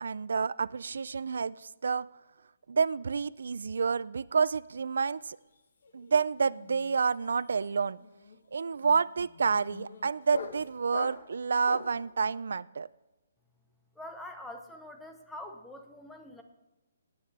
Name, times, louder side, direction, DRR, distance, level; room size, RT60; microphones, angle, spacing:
voice 1, 0.0-2.1 2.7-5.4 5.9-8.0 8.5-12.9, right 5 dB, 70° right, 18 dB, 0.3 m, -29 dB
sound 1, 5.3-5.6 5.8-12.1, left 4 dB, 55° left, 1.3 m, -44 dB
voice 2, 13.9-16.4, left 1 dB, ahead, 5 dB, 0.7 m, -44 dB
17.5 x 8.7 x 3.4 m, 1.1 s
hypercardioid pair, 175°, 0 cm